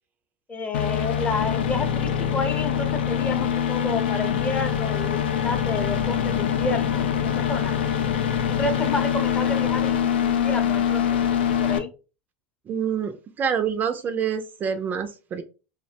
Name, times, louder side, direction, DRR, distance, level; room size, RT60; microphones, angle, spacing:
voice 1, 0.5-7.7 8.6-11.2 11.6-11.9, left 3 dB, 20° left, 6 dB, 0.6 m, -30 dB
sound 1, 0.7-11.8, left 8 dB, 80° left, 0.4 m, -24 dB
voice 2, 12.7-15.4, right 7 dB, 30° right, 8 dB, 0.3 m, -27 dB
2.6 x 2.0 x 2.7 m, 0.33 s
hypercardioid pair, 95°, 6 cm